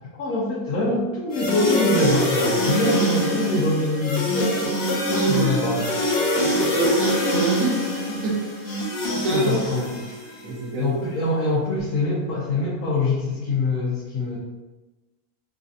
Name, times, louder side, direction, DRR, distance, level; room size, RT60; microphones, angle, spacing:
voice 1, 0.2-5.9 9.3-9.9 10.3-10.4 10.8-14.4, left 2 dB, 85° left, -7 dB, 1.2 m, -24 dB
sound 1, 1.3-10.4, equal, 60° left, 0.6 m, -24 dB
voice 2, 5.1-5.6 6.4-7.8 8.1-8.4 9.1-9.6 10.4-11.0, right 2 dB, 70° right, -1 dB, 1.0 m, -25 dB
3.0 x 2.6 x 2.4 m, 1.1 s
omnidirectional pair, 1.5 m